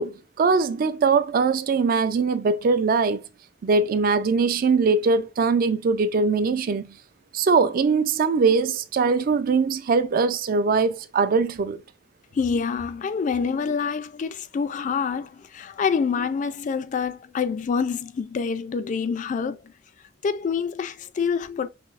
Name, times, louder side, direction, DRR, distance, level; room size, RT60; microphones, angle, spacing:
voice 1, 0.0-3.2 3.6-6.9 7.3-11.8, right 4 dB, 50° right, 0.3 m, -21 dB
voice 2, 12.3-19.7 20.2-21.7, left 5 dB, 40° left, 0.3 m, -26 dB
5.8 x 2.0 x 2.4 m
head